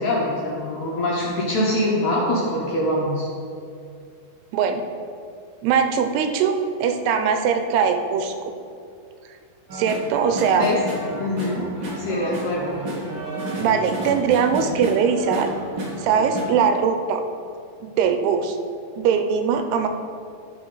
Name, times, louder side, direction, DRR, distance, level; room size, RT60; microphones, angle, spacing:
voice 1, 0.0-3.3 10.5-10.8 11.2-11.6 12.0-12.7, left 1 dB, 70° left, -4 dB, 1.9 m, -24 dB
voice 2, 4.5-4.8 5.6-8.5 9.7-10.7 13.6-15.5 16.0-17.2 17.8-18.6 19.0-19.9, right 6 dB, 90° right, 6 dB, 2.7 m, -21 dB
sound 1, 9.7-16.4, right 1 dB, 65° right, 1.2 m, -31 dB
14.0 x 4.9 x 3.9 m, 2.4 s
omnidirectional pair, 4.6 m